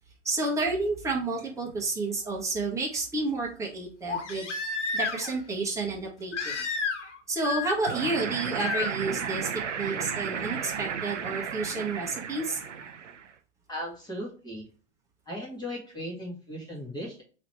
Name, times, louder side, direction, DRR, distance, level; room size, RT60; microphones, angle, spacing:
voice 1, 0.2-4.5 4.9-6.5 7.3-9.5 9.8-12.6, right 3 dB, 10° right, -3 dB, 1.4 m, -30 dB
Crying sobbing, 1.3-1.4 4.1-5.4 6.3-7.2 7.4-8.0 8.6-8.9 10.5-10.6, left 4 dB, 80° left, 1.2 m, -31 dB
sound 1, 7.9-13.3, right 7 dB, 85° right, 0.7 m, -34 dB
voice 2, 13.7-14.7 15.3-17.2, equal, 10° left, -5 dB, 1.8 m, -37 dB
3.8 x 3.2 x 4.3 m, 0.39 s
hypercardioid pair, 105°, 36 cm